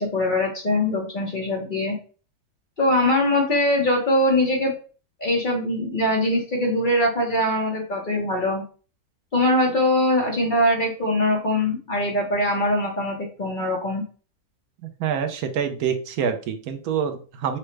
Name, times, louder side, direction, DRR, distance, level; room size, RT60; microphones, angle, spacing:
voice 1, 0.0-2.0 2.8-4.7 5.2-8.6 9.3-14.0, left 1 dB, 40° left, 0 dB, 0.8 m, -22 dB
voice 2, 14.8-17.6, right 7 dB, 80° right, 8 dB, 1.1 m, -26 dB
5.7 x 2.1 x 3.2 m, 0.38 s
omnidirectional pair, 1.6 m